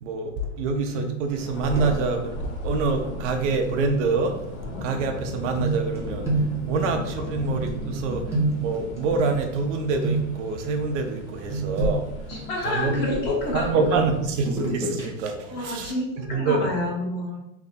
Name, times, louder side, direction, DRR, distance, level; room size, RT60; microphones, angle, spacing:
voice 1, 0.0-2.4 2.6-4.4 4.8-6.3 6.7-12.1 12.6-13.1 13.5-16.7, right 4 dB, 60° right, 5 dB, 0.6 m, -26 dB
sound 1, 1.0-1.5 1.7-2.2 3.6-3.8 5.5-9.7 10.0-10.6 11.5-13.3 14.4-15.0 15.4-15.5, right 2 dB, 5° right, 0.8 m, -29 dB
Thunder, 1.2-14.8, left 1 dB, 85° left, 1.1 m, -35 dB
voice 2, 12.3-13.7 15.4-17.4, left 1 dB, 25° left, -2 dB, 0.8 m, -28 dB
3.3 x 2.0 x 4.0 m, 0.83 s
supercardioid pair, 145°, 41 cm